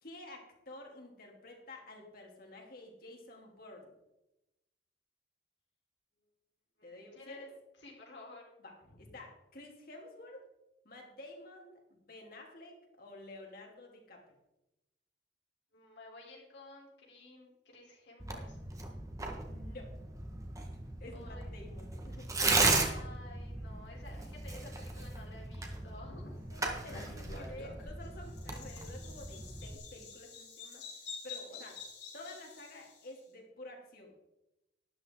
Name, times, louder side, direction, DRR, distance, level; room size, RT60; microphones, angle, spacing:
voice 1, 0.0-3.9 6.8-7.5 8.6-8.7 9.0-10.4 10.8-14.2 19.2-19.9 20.6-22.3 26.5-30.8 31.2-31.8 32.1-34.2, left 2 dB, 55° left, 0 dB, 3.0 m, -50 dB
voice 2, 6.8-8.4 8.9-9.2 15.7-18.6 21.1-21.5 22.7-26.4 26.7-26.8 28.7-28.8, left 2 dB, 90° left, -1 dB, 4.0 m, -53 dB
Tearing, 18.2-29.8, right 3 dB, 20° right, 1.5 m, -36 dB
Bird vocalization bird call bird song, 26.8-33.1, left 4 dB, 75° left, 4.9 m, -48 dB
12.5 x 11.0 x 3.9 m, 0.91 s
head